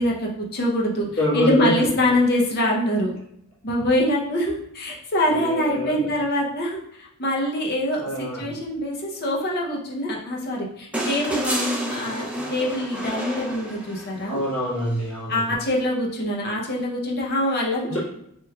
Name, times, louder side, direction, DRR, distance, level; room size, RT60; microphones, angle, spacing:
voice 1, 0.0-1.1 1.3-3.1 3.6-14.4 15.3-17.8, left 1 dB, 50° left, -2 dB, 0.6 m, -24 dB
voice 2, 1.2-1.8 5.3-6.1 8.0-8.6 14.3-15.6 17.8-18.0, left 1 dB, 70° left, -7 dB, 1.3 m, -26 dB
sound 1, 10.9-14.3 15.8-15.9, right 1 dB, 5° right, 0.4 m, -29 dB
3.4 x 3.0 x 2.2 m, 0.73 s
head